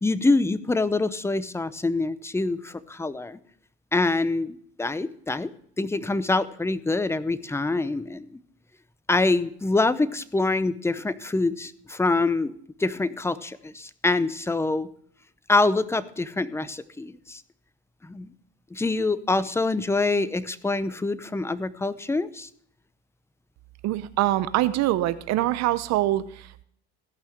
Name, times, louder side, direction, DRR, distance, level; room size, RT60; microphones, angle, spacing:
voice 1, 0.0-3.4 3.9-5.5 5.8-8.4 9.1-12.5 12.8-14.9 15.5-17.4 18.0-18.3 18.7-22.5, left 3 dB, 10° left, 15 dB, 0.7 m, -25 dB
voice 2, 23.8-26.6, right 15 dB, 65° right, 14 dB, 0.7 m, -24 dB
16.0 x 5.6 x 6.5 m, 0.64 s
supercardioid pair, 85°, 29 cm